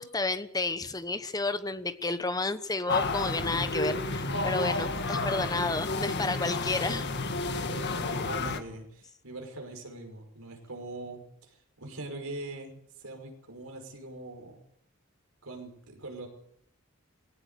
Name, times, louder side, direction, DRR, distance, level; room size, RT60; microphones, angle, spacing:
voice 1, 0.0-7.1, left 3 dB, 20° left, 11 dB, 1.2 m, -31 dB
sound 1, 2.9-8.6, left 3 dB, 55° left, 1.7 m, -31 dB
voice 2, 7.7-14.6 15.4-16.3, right 2 dB, 80° right, 4 dB, 5.5 m, -42 dB
20.0 x 17.0 x 8.3 m, 0.74 s
head